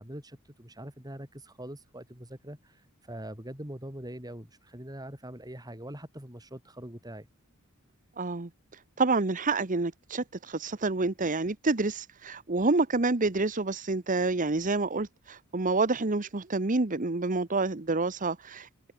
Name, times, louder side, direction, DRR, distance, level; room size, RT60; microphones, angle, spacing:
voice 1, 0.0-7.3, right 1 dB, 20° right, 6.8 m, -43 dB
voice 2, 8.2-18.9, right 3 dB, 40° right, 1.0 m, -28 dB
open air
head